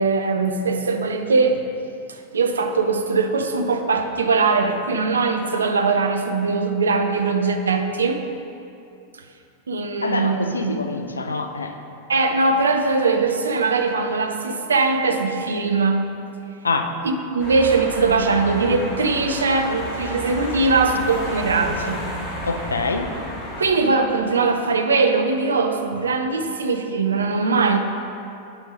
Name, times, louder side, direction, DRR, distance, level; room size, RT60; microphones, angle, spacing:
voice 1, 0.0-1.6 2.1-8.2 9.7-10.7 12.1-16.1 17.0-22.1 23.6-27.8, right 4 dB, 70° right, 5 dB, 0.6 m, -21 dB
voice 2, 10.0-11.7 16.6-16.9 22.4-23.1, left 3 dB, 75° left, 6 dB, 0.5 m, -25 dB
sound 1, 17.4-23.6, equal, 35° left, 1.8 m, -32 dB
8.2 x 5.3 x 5.0 m, 2.7 s
figure-of-eight pair, 90°, 0 cm